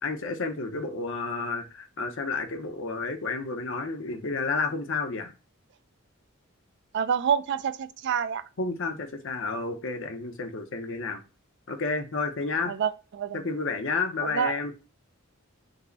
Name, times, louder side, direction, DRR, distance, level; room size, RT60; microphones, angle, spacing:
voice 1, 0.0-5.4 8.6-11.2 11.7-12.7 13.3-14.7, left 4 dB, 65° left, 0.7 m, -31 dB
voice 2, 6.9-8.4 12.7-13.4 14.2-14.5, right 7 dB, 55° right, 0.3 m, -27 dB
5.3 x 2.1 x 3.9 m
head